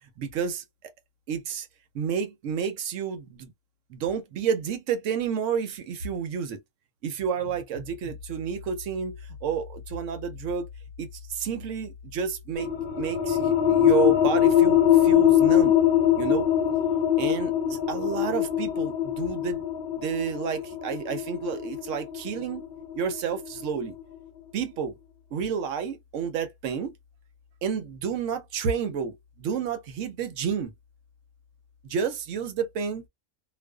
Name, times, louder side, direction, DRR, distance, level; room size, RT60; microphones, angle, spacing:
voice 1, 0.2-0.6 1.3-1.7 1.9-3.5 3.9-6.6 7.0-10.7 11.0-12.7 13.0-15.8 16.2-16.5 17.2-19.6 20.0-22.7 22.9-23.9 24.5-25.0 25.3-26.9 27.6-30.7 31.8-33.0, right 6 dB, 65° right, 0.9 m, -30 dB
sound 1, 12.6-23.8, left 10 dB, 65° left, 0.5 m, -23 dB
2.5 x 2.3 x 2.2 m
omnidirectional pair, 1.5 m